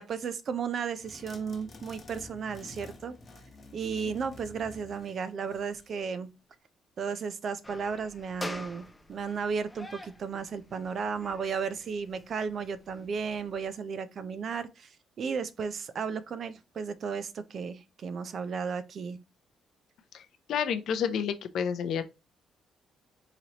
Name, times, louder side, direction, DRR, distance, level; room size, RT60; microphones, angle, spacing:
voice 1, 0.0-3.2 3.7-6.3 7.0-19.2, right 6 dB, 55° right, 0.4 m, -34 dB
sound 1, 1.0-6.0, left 2 dB, 40° left, 0.9 m, -50 dB
sound 2, 7.6-13.7, left 1 dB, 10° left, 0.5 m, -46 dB
voice 2, 20.1-22.1, left 7 dB, 70° left, 0.5 m, -30 dB
4.0 x 3.0 x 2.8 m
cardioid pair, 90°, 0 cm